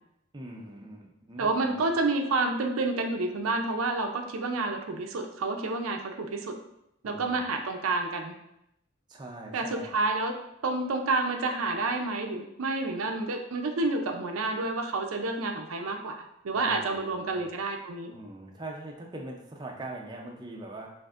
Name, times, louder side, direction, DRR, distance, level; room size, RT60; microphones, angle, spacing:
voice 1, 0.3-1.8 7.0-7.5 9.1-10.0 16.5-17.5 18.1-20.9, right 2 dB, 20° right, 0 dB, 0.5 m, -42 dB
voice 2, 1.4-6.6 7.0-8.3 9.5-10.3 10.6-18.1, right 3 dB, 90° right, 4 dB, 0.5 m, -29 dB
5.9 x 2.6 x 2.4 m, 0.81 s
head